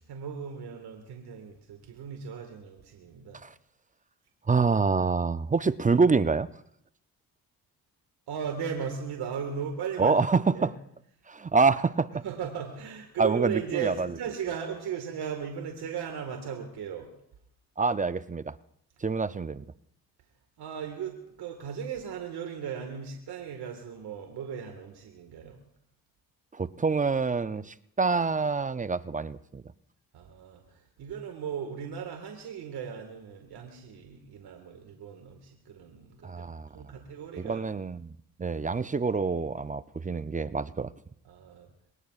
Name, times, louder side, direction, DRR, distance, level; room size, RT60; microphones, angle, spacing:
voice 1, 0.0-3.4 8.3-10.7 12.2-17.1 20.6-25.6 30.1-36.4 36.7-37.7 41.2-41.7, right 7 dB, 80° right, 4 dB, 1.9 m, -37 dB
voice 2, 4.5-6.5 10.0-10.7 11.3-12.2 13.2-14.1 17.8-18.5 19.0-19.6 26.5-29.6 36.2-36.7 37.4-40.9, right 4 dB, 20° right, 14 dB, 0.6 m, -26 dB
23.5 x 19.0 x 2.5 m, 0.77 s
supercardioid pair, 60°, 39 cm